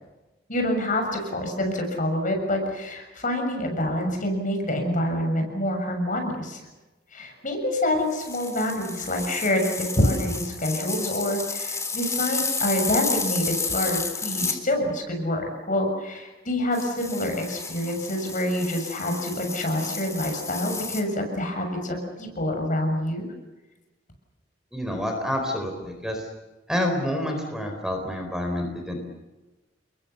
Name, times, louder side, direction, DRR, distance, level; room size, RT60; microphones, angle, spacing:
voice 1, 0.5-6.6 7.1-23.3, left 1 dB, 45° left, 4 dB, 6.9 m, -27 dB
sound 1, 8.1-14.6 16.7-21.0, left 4 dB, 15° left, 3.2 m, -31 dB
voice 2, 24.7-26.2 26.7-29.0, left 1 dB, 5° right, 3 dB, 4.4 m, -28 dB
30.0 x 22.0 x 7.0 m, 1.1 s
head